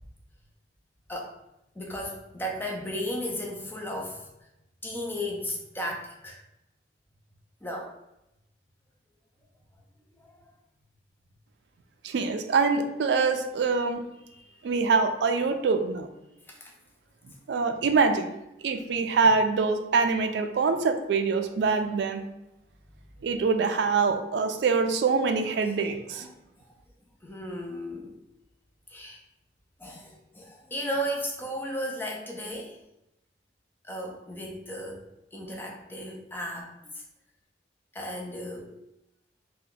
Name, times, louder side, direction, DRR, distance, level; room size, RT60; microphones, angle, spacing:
voice 1, 1.8-4.3 4.8-6.4 7.6-8.0 10.2-10.5 14.3-14.5 16.5-16.7 25.6-25.7 26.1-26.3 26.6-26.7 27.2-28.2 28.9-29.2 29.8-32.8 33.8-35.0 35.3-37.0 37.9-38.7, equal, 10° left, 0 dB, 0.4 m, -35 dB
voice 2, 12.0-14.0 14.6-16.1 17.5-18.3 18.6-22.2 23.2-26.3, right 4 dB, 65° right, 6 dB, 0.3 m, -24 dB
2.7 x 2.2 x 3.8 m, 0.88 s
head